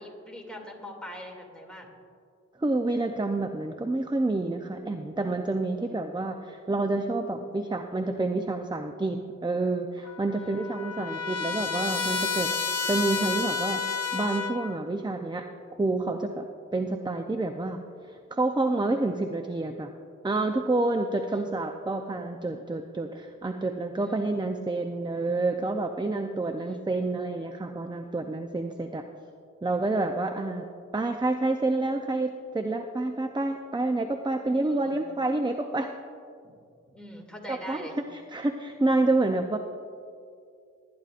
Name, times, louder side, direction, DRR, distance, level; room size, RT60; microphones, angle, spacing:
voice 1, 0.0-1.9 5.9-6.0 10.4-10.8 21.3-21.6 24.0-24.2 26.6-26.9 34.6-35.0 36.4-36.5 36.9-38.0, equal, 5° left, -1 dB, 2.5 m, -43 dB
voice 2, 2.6-12.5 12.9-13.8 14.1-15.5 15.8-16.4 16.7-19.9 20.2-29.0 29.6-30.6 30.9-35.9 37.5-39.6, right 2 dB, 15° right, 6 dB, 0.6 m, -28 dB
Trumpet, 10.0-14.8, left 5 dB, 60° left, 0.8 m, -30 dB
19.5 x 10.5 x 2.5 m, 2.3 s
cardioid pair, 50°, 30 cm